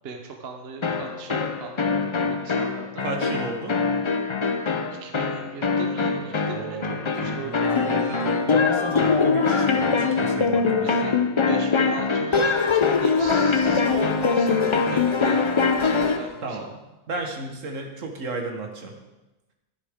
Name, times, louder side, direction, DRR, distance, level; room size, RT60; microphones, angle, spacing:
voice 1, 0.0-3.1 4.9-8.0 10.8-12.6 13.0-16.8, right 5 dB, 50° right, 4 dB, 1.1 m, -38 dB
sound 1, 0.8-16.3, left 4 dB, 45° left, 0.4 m, -23 dB
voice 2, 3.0-3.8 6.3-11.0 16.4-16.6 17.1-18.9, right 2 dB, 70° right, 3 dB, 1.7 m, -34 dB
11.0 x 10.0 x 3.6 m, 1.0 s
omnidirectional pair, 1.4 m